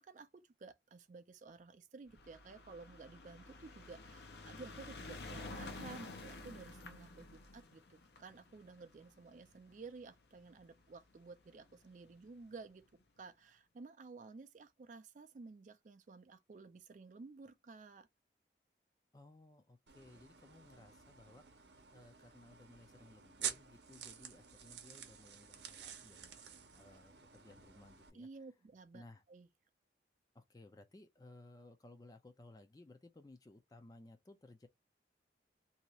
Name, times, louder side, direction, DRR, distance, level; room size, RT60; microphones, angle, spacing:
voice 1, 0.0-12.8 13.2-18.1 28.1-29.0 29.3-29.5, right 4 dB, 45° right, 0.4 m, -54 dB
sound 1, 2.1-10.6 11.4-11.5 11.7-11.8 12.0-12.1, left 3 dB, 65° left, 0.6 m, -51 dB
voice 2, 19.1-28.3 28.9-29.2 30.3-34.7, left 2 dB, 20° left, 0.4 m, -59 dB
sound 2, 19.9-28.1, right 8 dB, 75° right, 0.7 m, -49 dB
2.7 x 2.4 x 2.9 m
head